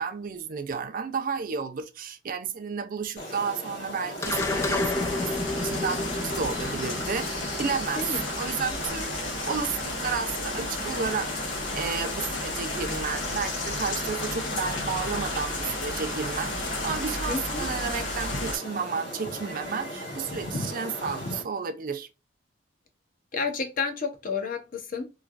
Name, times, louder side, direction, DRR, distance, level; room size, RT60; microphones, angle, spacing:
voice 1, 0.0-8.0 8.3-9.1 9.5-22.1, right 5 dB, 50° right, 0.4 m, -32 dB
sound 1, 3.2-21.4, left 1 dB, 70° left, 1.5 m, -38 dB
sound 2, 4.2-18.6, left 2 dB, 90° left, 1.1 m, -33 dB
sound 3, 4.2-8.8, left 2 dB, 15° left, 0.3 m, -31 dB
voice 2, 17.3-17.7 23.3-25.1, left 4 dB, 50° left, 0.7 m, -30 dB
3.1 x 2.4 x 2.4 m
head